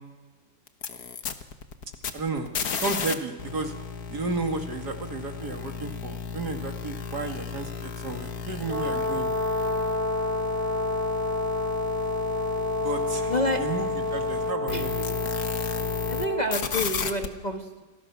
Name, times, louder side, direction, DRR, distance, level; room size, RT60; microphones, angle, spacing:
sound 1, 0.7-3.1 3.4-16.3 16.5-17.3, left 6 dB, 60° left, 1.7 m, -34 dB
voice 1, 2.1-3.7 4.1-9.3 12.8-15.1, right 3 dB, 65° right, 4 dB, 2.7 m, -33 dB
Brass instrument, 8.6-16.6, left 2 dB, 30° right, 3.6 m, -29 dB
voice 2, 13.3-13.6 14.7-14.8 16.1-17.8, equal, 25° left, 2 dB, 1.5 m, -28 dB
28.0 x 19.0 x 6.1 m, 1.3 s
omnidirectional pair, 1.9 m